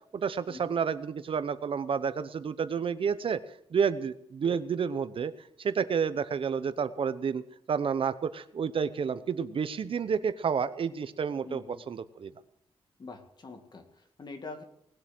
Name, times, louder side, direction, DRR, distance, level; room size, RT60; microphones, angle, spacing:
voice 1, 0.1-3.4 3.7-12.3, right 6 dB, 60° right, 13 dB, 0.8 m, -30 dB
voice 2, 11.4-11.8 13.0-14.6, left 3 dB, 45° left, 5 dB, 2.2 m, -44 dB
19.0 x 8.0 x 7.7 m, 0.73 s
wide cardioid pair, 135°, 10 cm